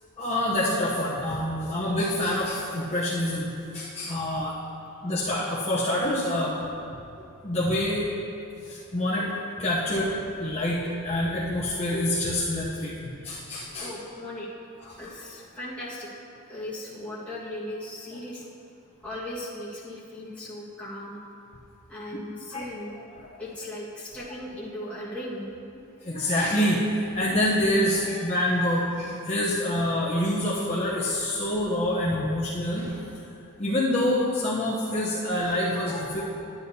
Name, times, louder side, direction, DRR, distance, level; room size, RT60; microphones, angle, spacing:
voice 1, 0.2-4.5 5.0-6.5 7.4-8.1 8.6-13.9 14.8-15.1 22.5-22.7 23.0-23.1 26.0-33.0 33.6-36.3, left 1 dB, 30° left, -7 dB, 0.9 m, -26 dB
voice 2, 13.8-14.5 15.0-16.1 16.5-18.4 19.0-21.2 21.9-22.9 23.4-25.5, left 1 dB, 5° left, -9 dB, 1.7 m, -37 dB
11.5 x 9.2 x 2.8 m, 2.6 s
head